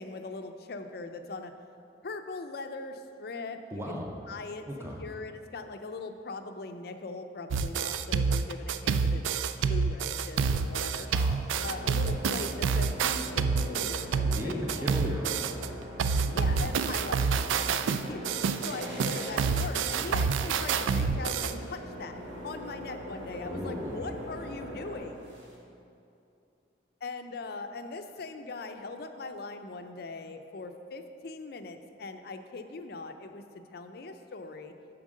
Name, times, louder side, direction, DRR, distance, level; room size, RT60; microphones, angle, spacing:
voice 1, 0.0-1.5 2.0-4.6 5.0-9.3 9.6-11.1 11.6-14.9 16.3-18.2 18.6-22.2 22.4-25.3 27.0-33.4 33.7-34.7, left 3 dB, 55° left, 7 dB, 0.4 m, -40 dB
voice 2, 3.7-4.1 4.7-5.0 11.0-11.5 14.2-15.6 23.4-24.0, equal, 15° right, -1 dB, 0.6 m, -36 dB
sound 1, 7.5-15.7 16.0-21.5, right 5 dB, 85° right, 0.3 m, -28 dB
sound 2, 11.0-25.5, equal, 70° right, 1.7 m, -42 dB
7.3 x 4.6 x 6.2 m, 2.7 s
head